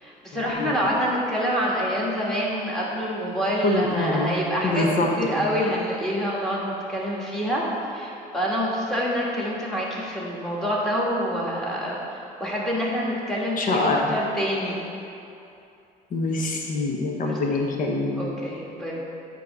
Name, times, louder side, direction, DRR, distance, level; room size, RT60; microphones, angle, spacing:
voice 1, 0.0-4.8 5.2-7.6 7.9-14.8 17.2-17.6 18.2-18.9, equal, 5° left, -5 dB, 1.4 m, -27 dB
voice 2, 3.6-4.4 4.6-5.1 5.4-5.5 13.6-14.2 16.1-18.3, left 2 dB, 50° left, 0 dB, 1.0 m, -24 dB
8.3 x 3.0 x 5.3 m, 2.6 s
cardioid pair, 110°, 17 cm